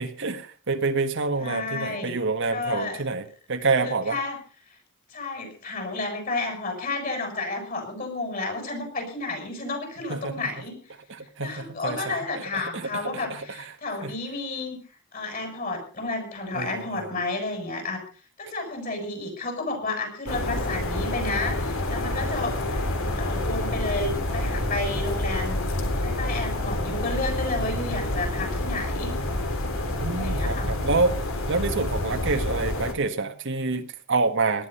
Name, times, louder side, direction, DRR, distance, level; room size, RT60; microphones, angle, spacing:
voice 1, 0.0-4.2 10.1-10.5 11.1-12.2 12.5-13.4 14.0-14.1 16.5-17.1 27.6-28.0 30.0-31.2 31.5-34.7, right 3 dB, 60° right, 7 dB, 1.5 m, -27 dB
voice 2, 1.4-2.1 2.5-3.0 3.8-4.4 5.1-10.8 11.4-14.8 15.1-18.0 18.4-22.8 23.1-25.6 26.0-29.1 30.1-30.7, left 2 dB, 40° left, 5 dB, 7.4 m, -31 dB
sound 1, 20.3-32.9, left 1 dB, 65° left, 3.4 m, -28 dB
18.5 x 12.5 x 5.6 m, 0.41 s
head